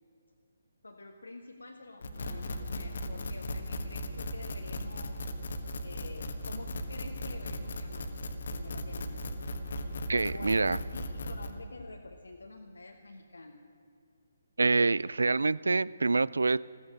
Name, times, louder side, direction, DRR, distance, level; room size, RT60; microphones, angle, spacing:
voice 1, 0.8-5.2 5.8-9.2 10.3-13.7, left 2 dB, 70° left, 2 dB, 1.1 m, -48 dB
sound 1, 2.0-11.5, left 1 dB, 50° left, 1.3 m, -37 dB
voice 2, 10.1-10.8 14.6-16.6, right 3 dB, 65° right, 21 dB, 0.3 m, -26 dB
15.5 x 14.0 x 6.4 m, 2.5 s
figure-of-eight pair, 140°, 0 cm